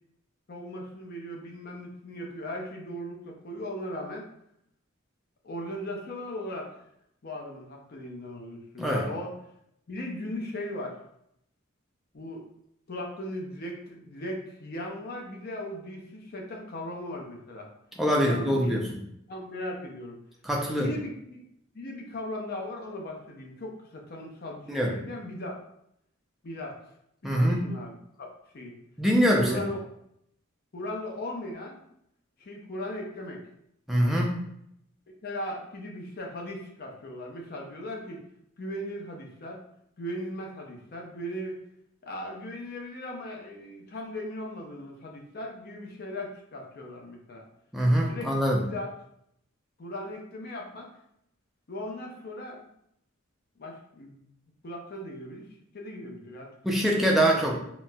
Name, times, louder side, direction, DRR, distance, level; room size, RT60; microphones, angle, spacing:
voice 1, 0.5-4.3 5.4-6.7 7.2-9.3 9.9-11.0 12.1-12.4 12.9-17.7 18.2-18.8 19.3-20.2 20.6-21.4 21.7-25.6 26.4-26.8 27.2-28.8 29.4-29.9 30.7-31.8 32.4-33.4 35.2-38.2 38.6-39.6 40.0-41.6 42.0-47.4 48.0-48.3 48.6-48.9 49.8-50.9 51.7-52.6 53.6-54.2 54.6-55.4 55.7-56.5 57.1-57.5, left 1 dB, 45° left, 0 dB, 0.6 m, -38 dB
voice 2, 18.0-19.0 20.4-20.9 24.7-24.9 27.2-27.6 29.0-29.6 33.9-34.3 47.7-48.6 56.6-57.6, equal, ahead, -2 dB, 0.4 m, -24 dB
4.1 x 2.1 x 2.3 m, 0.75 s
head